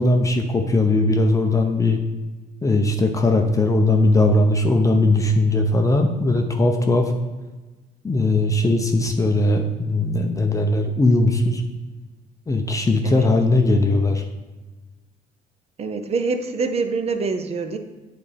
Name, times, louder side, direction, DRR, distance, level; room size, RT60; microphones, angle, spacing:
voice 1, 0.0-2.0 2.6-7.1 8.0-11.6 12.5-14.2, left 2 dB, 20° left, 4 dB, 0.6 m, -19 dB
voice 2, 15.8-17.8, right 4 dB, 35° right, 7 dB, 0.7 m, -25 dB
8.5 x 4.2 x 3.3 m, 1.2 s
cardioid pair, 110°, 17 cm